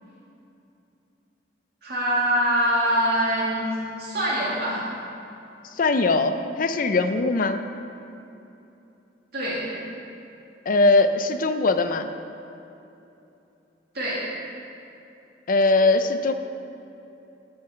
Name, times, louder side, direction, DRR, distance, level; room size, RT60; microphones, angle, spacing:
voice 1, 1.8-4.8 9.3-9.7 13.9-14.2, equal, 60° right, -7 dB, 2.3 m, -24 dB
voice 2, 5.8-7.6 10.7-12.1 15.5-16.3, left 3 dB, 50° left, 9 dB, 0.5 m, -21 dB
13.0 x 5.7 x 5.7 m, 2.8 s
head